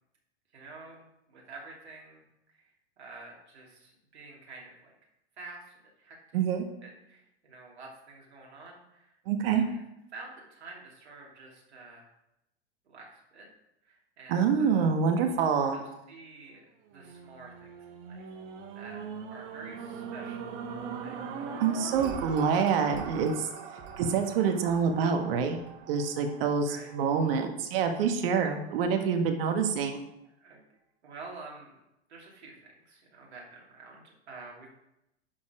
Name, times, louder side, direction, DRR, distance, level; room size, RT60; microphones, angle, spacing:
voice 1, 0.5-2.2 3.0-4.9 5.4-6.2 6.8-9.1 9.6-9.9 10.1-12.1 12.8-13.5 13.8-14.9 15.6-15.8 16.1-18.3 18.7-19.0 19.3-21.6 22.2-22.4 26.2-26.9 30.4-30.6 31.0-31.8 32.1-34.7, right 3 dB, 75° right, -2 dB, 2.9 m, -49 dB
voice 2, 6.3-6.7 9.3-9.6 14.3-15.8 21.6-23.5 24.0-25.6 25.9-30.0, right 6 dB, 60° right, 5 dB, 1.5 m, -26 dB
sound 1, 16.9-27.2 27.8-27.9, right 6 dB, 40° right, 1.2 m, -41 dB
11.0 x 4.3 x 5.0 m, 0.84 s
hypercardioid pair, 105°, 33 cm